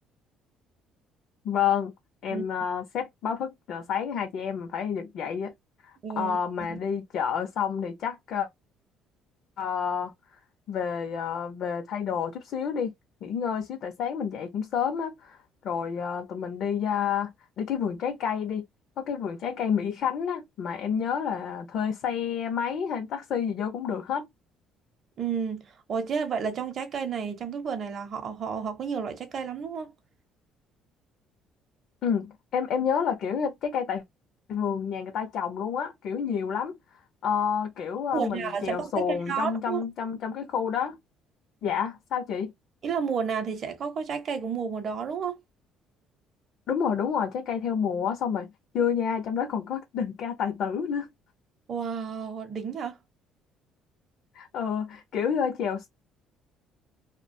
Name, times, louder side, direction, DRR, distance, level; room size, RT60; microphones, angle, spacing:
voice 1, 1.4-1.9 2.2-5.5 6.2-8.5 9.6-10.1 10.7-12.9 13.2-15.4 15.6-17.3 17.6-18.6 19.0-24.3 32.0-34.0 34.5-36.8 37.2-41.0 41.6-42.5 46.7-51.1 54.3-55.9, left 7 dB, 60° left, 0.5 m, -29 dB
voice 2, 6.0-6.8 25.2-29.9 38.1-39.8 42.8-45.4 51.7-53.0, right 6 dB, 45° right, 0.6 m, -31 dB
2.3 x 2.1 x 2.5 m
cardioid pair, 125°, 0 cm